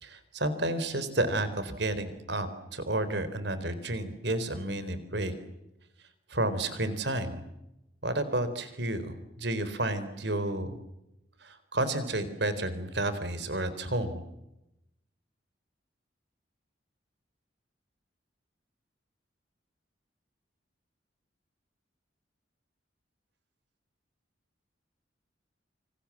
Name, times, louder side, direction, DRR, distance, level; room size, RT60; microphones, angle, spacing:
voice 1, 0.0-5.3 6.3-7.4 8.0-10.7 11.4-14.2, right 1 dB, 65° right, 12 dB, 4.0 m, -31 dB
29.0 x 27.0 x 7.4 m, 0.90 s
head